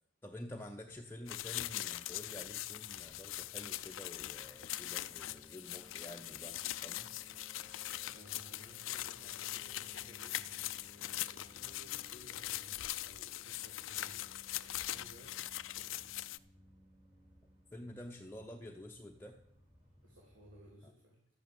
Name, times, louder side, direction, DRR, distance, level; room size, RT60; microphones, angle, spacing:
voice 1, 0.2-7.1 17.7-19.4 20.8-20.9, left 1 dB, 10° left, 1 dB, 0.7 m, -49 dB
sound 1, 0.9-20.7, left 1 dB, 35° right, 4.3 m, -63 dB
sound 2, 1.3-16.4, left 14 dB, 90° left, 0.5 m, -42 dB
voice 2, 8.1-10.4 10.9-15.3 15.7-16.1 20.0-21.2, equal, 85° right, -3 dB, 3.4 m, -59 dB
13.0 x 9.0 x 7.0 m, 0.72 s
head